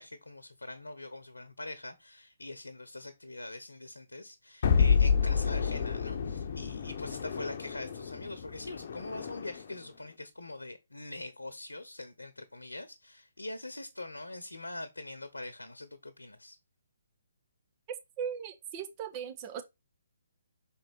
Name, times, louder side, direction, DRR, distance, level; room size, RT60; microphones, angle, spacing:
voice 1, 0.0-16.6, left 2 dB, 85° left, 1.0 m, -43 dB
sound 1, 4.6-9.7, left 6 dB, 50° left, 1.0 m, -29 dB
voice 2, 18.2-19.6, right 8 dB, 30° right, 1.2 m, -38 dB
6.1 x 4.7 x 4.2 m
figure-of-eight pair, 140°, 0 cm